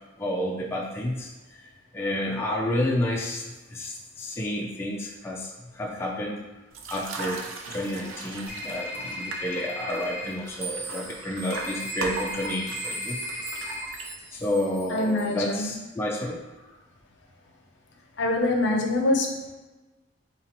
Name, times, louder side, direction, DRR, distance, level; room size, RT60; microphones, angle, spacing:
voice 1, 0.2-1.3 1.9-6.4 6.9-7.4 7.7-13.2 14.3-16.4, left 1 dB, 15° left, -3 dB, 0.3 m, -30 dB
sound 1, 6.7-14.5, right 3 dB, 90° right, 0.5 m, -39 dB
sound 2, 8.5-10.3 11.5-13.9, left 2 dB, 5° right, 0.7 m, -36 dB
sound 3, 10.5-15.5, right 3 dB, 45° right, 0.9 m, -40 dB
voice 2, 14.9-15.8 18.2-19.5, left 2 dB, 60° left, 1 dB, 0.6 m, -25 dB
4.2 x 2.9 x 2.8 m, 1.1 s
head